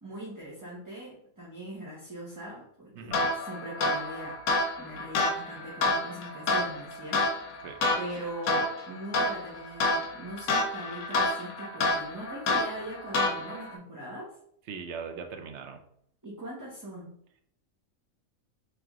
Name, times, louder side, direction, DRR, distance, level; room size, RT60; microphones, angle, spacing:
voice 1, 0.0-4.4 4.8-7.3 7.5-14.3 16.2-17.2, right 1 dB, 15° right, -7 dB, 0.9 m, -41 dB
voice 2, 3.0-3.3 7.6-7.8 14.7-15.8, right 5 dB, 65° right, 6 dB, 0.8 m, -40 dB
sound 1, 3.1-13.8, left 2 dB, 90° left, 1.2 m, -29 dB
3.4 x 3.4 x 3.6 m, 0.66 s
omnidirectional pair, 1.4 m